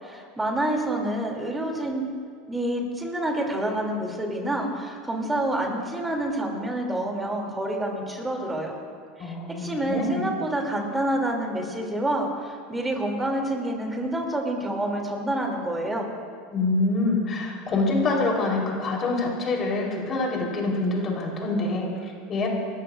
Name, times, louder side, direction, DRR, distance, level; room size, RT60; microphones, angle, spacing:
voice 1, 0.0-2.0 2.5-8.8 9.2-16.1, right 1 dB, 10° right, 0 dB, 3.0 m, -28 dB
voice 2, 9.2-10.3 16.5-22.5, left 2 dB, 35° left, -1 dB, 4.1 m, -26 dB
29.0 x 14.0 x 2.6 m, 2.1 s
hypercardioid pair, 100°, 0 cm